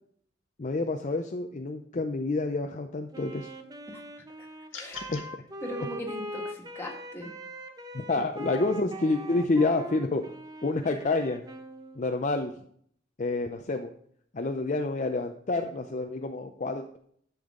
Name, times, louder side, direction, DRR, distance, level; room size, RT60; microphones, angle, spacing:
voice 1, 0.6-3.5 5.1-5.2 7.9-10.3 10.6-11.4 12.0-12.5 13.2-13.9 14.3-17.0, left 3 dB, 40° left, 4 dB, 0.5 m, -28 dB
Wind instrument woodwind instrument, 3.1-12.1, equal, 20° right, 0.8 m, -41 dB
sound 1, 4.7-5.3, left 7 dB, 80° left, 1.7 m, -41 dB
voice 2, 4.7-5.1 5.6-7.3 8.1-8.3, left 1 dB, 15° left, -1 dB, 1.8 m, -39 dB
11.5 x 7.0 x 3.7 m, 0.63 s
head